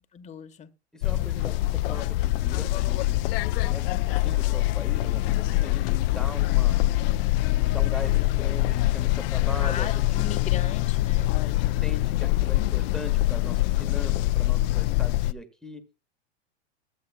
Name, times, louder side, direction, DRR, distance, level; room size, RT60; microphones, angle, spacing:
voice 1, 0.1-0.7 9.6-11.3, left 7 dB, 20° left, 1.2 m, -37 dB
voice 2, 0.9-3.2 3.5-6.8 7.4-10.3 11.3-15.8, left 1 dB, ahead, 1.4 m, -41 dB
sound 1, 1.0-15.3, left 17 dB, 55° left, 0.5 m, -24 dB
21.5 x 8.5 x 2.2 m
hypercardioid pair, 120°, 34 cm